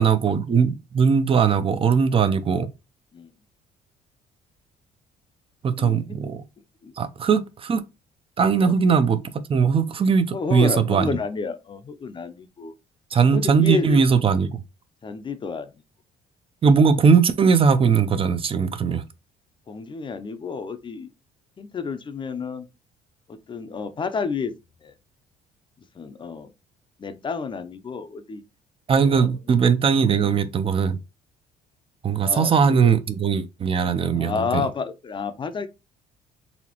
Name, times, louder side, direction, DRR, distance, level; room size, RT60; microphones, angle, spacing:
voice 1, 0.0-2.7 5.6-6.4 7.0-7.8 8.4-9.2 9.5-11.2 13.1-14.6 16.6-19.0 28.9-31.0 32.0-34.7, right 6 dB, 35° right, 0.5 m, -19 dB
voice 2, 5.7-6.2 6.8-6.9 8.6-8.7 10.3-12.7 13.3-14.0 15.0-15.7 19.7-21.1 21.6-22.7 23.3-24.5 24.8-24.9 26.0-26.5 27.0-28.4 29.0-29.3 30.2-30.3 32.2-32.9 34.1-35.7, left 5 dB, 30° left, 0.6 m, -30 dB
4.1 x 2.9 x 2.9 m
cardioid pair, 110°, 17 cm